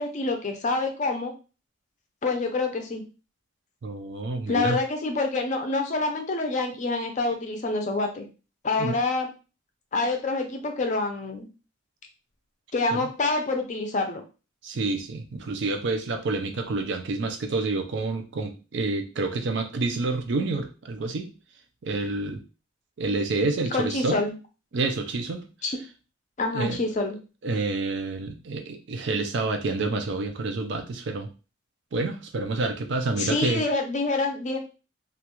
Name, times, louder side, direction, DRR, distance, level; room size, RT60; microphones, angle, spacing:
voice 1, 0.0-1.3 2.2-3.0 4.5-8.3 8.6-9.3 9.9-11.5 12.7-14.2 23.7-24.3 25.6-25.8 26.4-27.2 33.2-34.6, left 3 dB, 40° left, 4 dB, 0.5 m, -27 dB
voice 2, 3.8-4.8 8.8-9.0 12.9-13.1 14.6-21.3 21.8-22.4 23.0-24.2 24.7-25.5 26.5-26.8 27.4-31.3 31.9-33.6, right 3 dB, 65° right, 6 dB, 0.4 m, -28 dB
2.4 x 2.2 x 2.9 m, 0.33 s
head